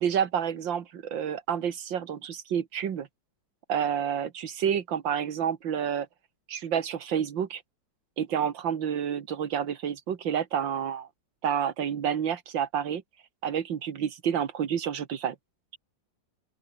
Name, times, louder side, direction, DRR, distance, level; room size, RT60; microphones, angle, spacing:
voice 1, 0.0-3.1 3.7-6.1 6.5-7.6 8.2-11.1 11.4-13.0 13.4-15.4, right 8 dB, 90° right, 2.3 m, -29 dB
open air
omnidirectional pair, 2.0 m